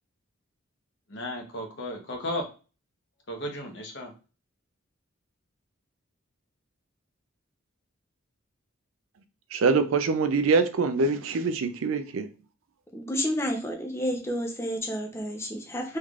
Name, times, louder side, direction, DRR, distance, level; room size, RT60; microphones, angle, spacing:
voice 1, 1.1-2.4 3.3-4.1, left 1 dB, 55° left, 0.9 m, -34 dB
voice 2, 9.5-12.3, right 4 dB, 80° right, 0.4 m, -24 dB
voice 3, 12.9-16.0, equal, 15° left, 0.6 m, -30 dB
3.3 x 3.2 x 2.4 m
head